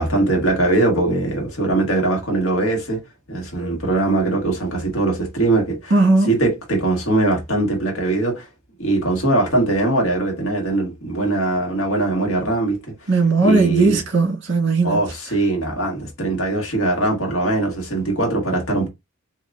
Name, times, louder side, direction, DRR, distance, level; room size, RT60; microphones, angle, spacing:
voice 1, 0.0-3.0 3.3-6.0 6.3-8.5 8.8-12.8 13.4-14.0 14.8-18.9, right 2 dB, 65° left, 1.7 m, -21 dB
voice 2, 5.9-6.3 13.1-15.0, right 3 dB, 55° right, 1.6 m, -17 dB
3.9 x 2.8 x 3.5 m
head